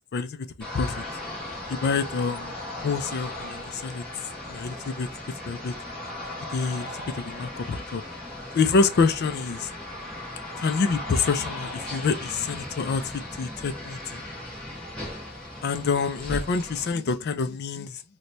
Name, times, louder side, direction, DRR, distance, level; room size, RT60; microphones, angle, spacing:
voice 1, 0.1-0.5 0.7-1.0 1.7-2.5 2.8-4.0 4.5-5.1 5.5-5.7 6.5-8.0 8.5-9.7 10.6-14.2 15.6-18.0, left 4 dB, 45° left, 0.3 m, -27 dB
sound 1, 0.6-16.9, left 1 dB, 5° left, 0.9 m, -37 dB
3.0 x 2.2 x 3.9 m
head